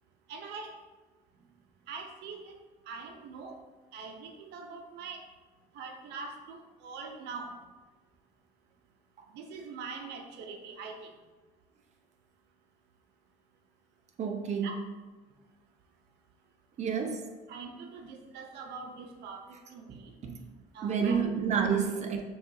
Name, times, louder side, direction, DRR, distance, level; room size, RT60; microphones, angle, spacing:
voice 1, 0.3-0.7 1.9-2.6 2.9-3.6 3.9-5.2 5.7-7.6 9.3-11.1 14.6-14.8 17.5-19.4 19.7-20.1 20.7-21.2 22.1-22.2, right 4 dB, 80° right, 3 dB, 0.6 m, -43 dB
voice 2, 14.2-14.8 16.8-17.3 19.9-20.4 20.8-22.2, right 6 dB, 45° right, 4 dB, 0.6 m, -30 dB
6.0 x 2.4 x 2.7 m, 1.3 s
cardioid pair, 110°, 17 cm